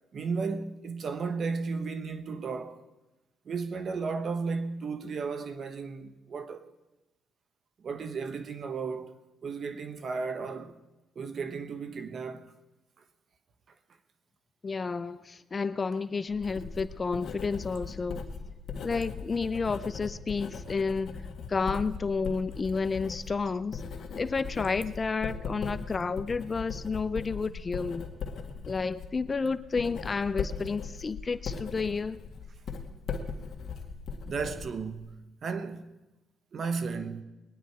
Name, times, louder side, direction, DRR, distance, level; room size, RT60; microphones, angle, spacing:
voice 1, 0.1-2.8 3.4-6.7 7.8-9.1 9.4-10.8 11.1-12.5 31.8-32.0 34.2-35.9 36.5-37.2, right 4 dB, 50° right, 1.1 m, -34 dB
voice 2, 14.6-18.3 18.8-21.2 21.5-23.8 24.2-28.1 28.6-32.2, left 4 dB, 30° left, 0.5 m, -31 dB
Writing, 16.3-35.1, left 5 dB, 55° left, 1.8 m, -39 dB
21.5 x 9.9 x 4.7 m
cardioid pair, 90°, 0 cm